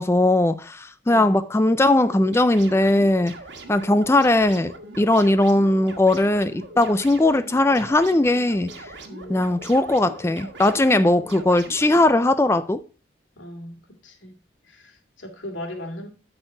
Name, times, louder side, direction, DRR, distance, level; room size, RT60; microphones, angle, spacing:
voice 1, 0.0-3.3 3.7-8.7 9.3-12.8, left 2 dB, 15° left, 0.3 m, -19 dB
sound 1, 2.0-12.1, right 2 dB, 75° right, 1.5 m, -41 dB
voice 2, 9.1-9.5 13.4-13.7 14.0-14.3 14.7-16.1, left 1 dB, 85° left, 2.5 m, -37 dB
12.0 x 4.5 x 4.4 m
head